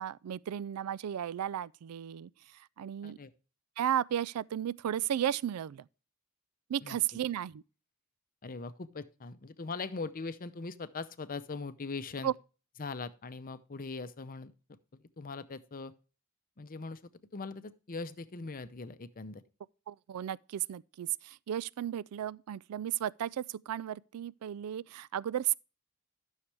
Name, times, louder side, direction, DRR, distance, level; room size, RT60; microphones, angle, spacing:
voice 1, 0.0-3.2 3.8-5.9 6.7-7.6 12.2-12.3 19.9-25.5, right 10 dB, 85° right, 0.3 m, -34 dB
voice 2, 8.4-12.3 12.8-14.5 14.9-15.9 16.6-19.4, left 4 dB, 40° left, 0.7 m, -41 dB
13.0 x 6.5 x 3.4 m
head